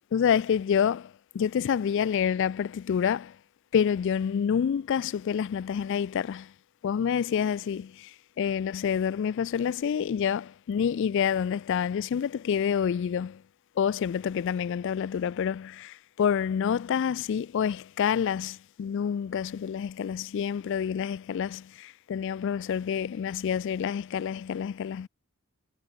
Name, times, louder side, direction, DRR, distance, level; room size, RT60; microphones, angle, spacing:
voice 1, 0.1-3.4 3.7-6.5 6.8-13.4 13.8-25.1, left 7 dB, 55° left, 0.3 m, -28 dB
head